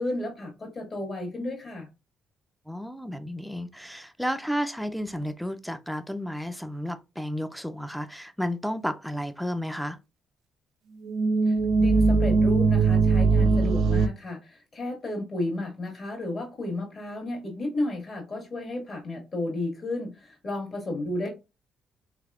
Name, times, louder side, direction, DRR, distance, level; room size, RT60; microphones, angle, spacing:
voice 1, 0.0-1.9 11.5-21.3, left 1 dB, 45° left, 1.6 m, -33 dB
voice 2, 2.7-10.0, equal, ahead, 0.4 m, -32 dB
sound 1, 11.0-14.1, right 4 dB, 75° right, 0.3 m, -21 dB
3.4 x 3.3 x 2.4 m
cardioid pair, 90°, 0 cm